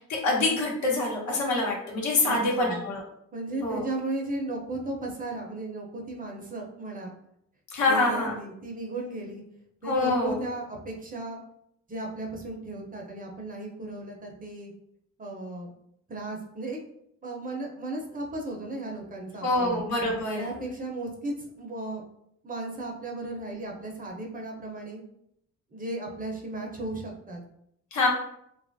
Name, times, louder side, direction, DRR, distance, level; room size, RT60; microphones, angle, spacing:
voice 1, 0.0-3.0 3.6-3.8 7.7-8.3 9.8-10.4 19.4-20.6 27.9-28.1, left 2 dB, 70° left, -2 dB, 1.0 m, -26 dB
voice 2, 2.2-2.8 3.3-7.1 7.8-9.4 9.8-11.4 11.9-14.7 15.2-15.7 16.1-16.8 17.2-19.8 20.4-22.0 22.4-25.0 25.7-27.4, right 2 dB, 30° right, 0 dB, 0.6 m, -35 dB
2.9 x 2.3 x 2.5 m, 0.73 s
cardioid pair, 90°, 30 cm